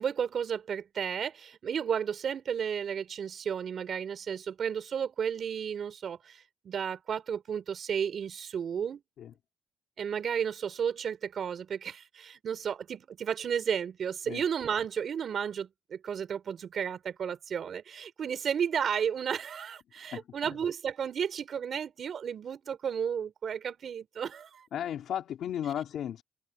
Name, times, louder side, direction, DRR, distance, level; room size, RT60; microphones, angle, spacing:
voice 1, 0.0-9.0 10.0-24.7, right 7 dB, 55° right, 4.3 m, -33 dB
voice 2, 20.1-20.5 24.7-26.2, left 10 dB, 70° left, 3.5 m, -35 dB
cardioid pair, 90°, 0 cm